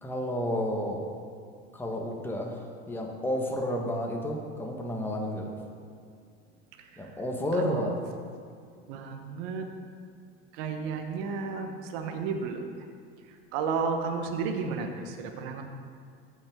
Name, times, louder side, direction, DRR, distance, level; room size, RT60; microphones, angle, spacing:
voice 1, 0.0-1.0 1.7-2.6 2.9-5.5 7.0-8.2, left 1 dB, 5° left, 0 dB, 1.4 m, -31 dB
voice 2, 6.8-7.1 7.6-7.8 8.9-9.7 10.5-12.7 13.3-15.6, right 5 dB, 70° right, 4 dB, 1.1 m, -33 dB
15.5 x 6.0 x 3.7 m, 2.2 s
supercardioid pair, 105°, 31 cm